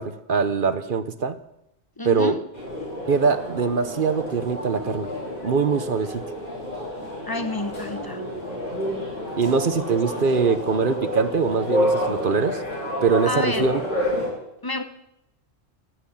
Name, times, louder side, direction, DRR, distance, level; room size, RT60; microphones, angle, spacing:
voice 1, 0.0-1.4 2.0-2.4 3.1-5.1 5.4-6.2 9.3-12.6 13.0-13.8, right 5 dB, 45° right, 0.9 m, -23 dB
voice 2, 2.0-2.4 7.3-8.2 13.3-13.7 14.6-14.8, left 2 dB, 20° left, 0.7 m, -28 dB
sound 1, 2.5-14.3, equal, 40° left, 5.8 m, -29 dB
16.5 x 6.3 x 9.8 m
omnidirectional pair, 1.3 m